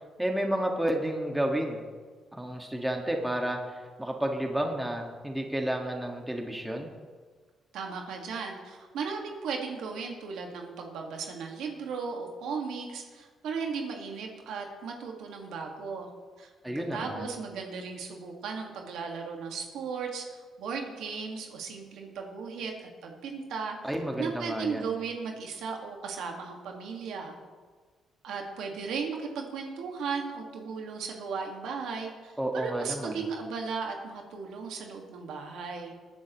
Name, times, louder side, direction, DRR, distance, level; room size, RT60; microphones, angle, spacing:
voice 1, 0.2-1.8 2.3-6.9 16.6-17.3 23.8-24.9 32.4-33.2, right 1 dB, 5° right, 2 dB, 1.7 m, -31 dB
voice 2, 7.7-16.1 16.4-16.5 16.7-27.3 28.2-35.9, right 5 dB, 80° right, 2 dB, 1.8 m, -36 dB
19.5 x 9.8 x 3.1 m, 1.5 s
cardioid pair, 90°, 0 cm